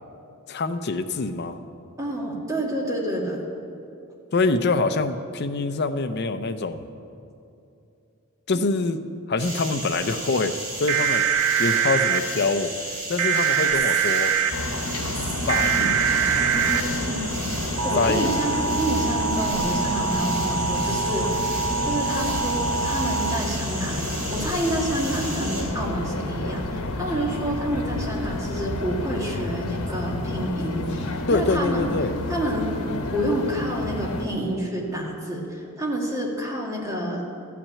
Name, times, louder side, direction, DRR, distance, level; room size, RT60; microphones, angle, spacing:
voice 1, 0.5-1.6 4.3-6.9 8.5-9.0 9.3-11.3 11.6-14.3 15.5-16.0 18.0-18.4 31.3-32.2, left 3 dB, 50° left, 9 dB, 0.5 m, -25 dB
voice 2, 2.0-3.4 8.5-8.6 15.8-15.9 17.1-17.2 17.6-31.9 32.3-32.7 33.1-37.2, right 1 dB, 15° right, -2 dB, 1.7 m, -29 dB
sound 1, 9.4-25.6, right 1 dB, 45° right, 3.6 m, -34 dB
sound 2, 10.9-12.2 13.2-14.5 15.5-16.8 17.8-23.4, right 7 dB, 85° right, 0.7 m, -24 dB
sound 3, 14.5-34.3, left 1 dB, 85° left, 1.1 m, -30 dB
14.0 x 5.9 x 8.4 m, 2.7 s
head